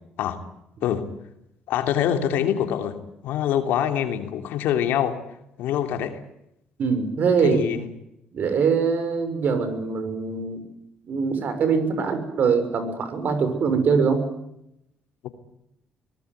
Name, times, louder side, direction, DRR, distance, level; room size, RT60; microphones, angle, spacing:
voice 1, 1.7-3.0 3.2-5.2 5.6-6.2 7.4-7.8 15.2-15.3, left 10 dB, 80° left, 7 dB, 3.1 m, -24 dB
voice 2, 6.8-7.6 8.3-10.6 11.0-14.3, right 5 dB, 60° right, 10 dB, 6.3 m, -23 dB
23.5 x 19.0 x 9.6 m, 0.82 s
supercardioid pair, 80°, 3 cm